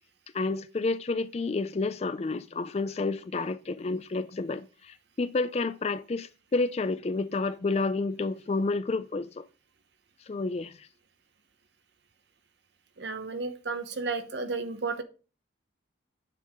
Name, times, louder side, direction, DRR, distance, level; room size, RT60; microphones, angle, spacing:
voice 1, 0.3-9.4 10.3-10.7, left 3 dB, 35° left, 0.4 m, -30 dB
voice 2, 13.0-15.0, right 4 dB, 65° right, 0.9 m, -33 dB
9.1 x 5.5 x 3.6 m
head